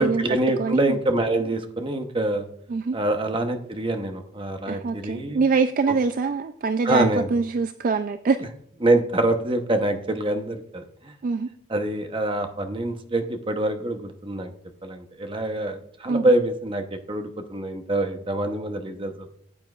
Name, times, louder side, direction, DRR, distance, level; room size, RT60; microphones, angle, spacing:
voice 1, 0.0-2.5 2.9-5.4 6.8-7.3 8.8-11.1 11.7-14.5 14.8-19.3, right 1 dB, 25° right, 6 dB, 0.8 m, -25 dB
voice 2, 0.6-1.0 2.7-3.0 4.7-8.5 11.2-11.5 16.1-16.2, right 4 dB, 45° right, 10 dB, 0.3 m, -24 dB
14.0 x 8.6 x 2.4 m, 0.69 s
head